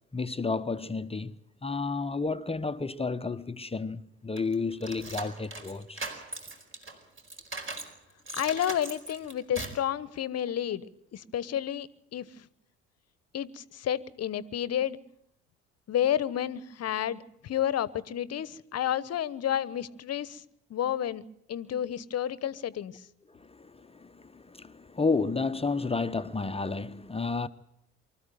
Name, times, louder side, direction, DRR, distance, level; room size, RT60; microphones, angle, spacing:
voice 1, 0.1-6.1 23.3-27.5, left 4 dB, 15° left, 0.9 m, -31 dB
sound 1, 4.4-7.9 8.3-9.9, right 2 dB, 35° right, 4.8 m, -39 dB
voice 2, 8.3-12.5 13.3-15.0 15.9-20.4 20.7-22.9, left 10 dB, 45° left, 1.1 m, -31 dB
24.5 x 13.5 x 9.2 m
hypercardioid pair, 55°, 35 cm